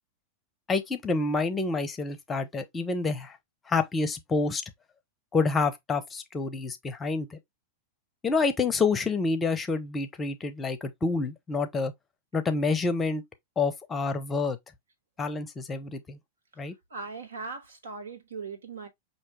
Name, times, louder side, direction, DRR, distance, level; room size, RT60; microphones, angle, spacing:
voice 1, 0.7-3.4 3.7-4.6 5.3-7.4 8.2-11.9 12.3-13.2 13.6-14.6 15.2-16.2 16.6-16.7, left 4 dB, 20° left, 0.7 m, -28 dB
voice 2, 16.5-18.9, right 4 dB, 70° right, 1.5 m, -40 dB
5.7 x 2.8 x 3.1 m
figure-of-eight pair, 90°, 0 cm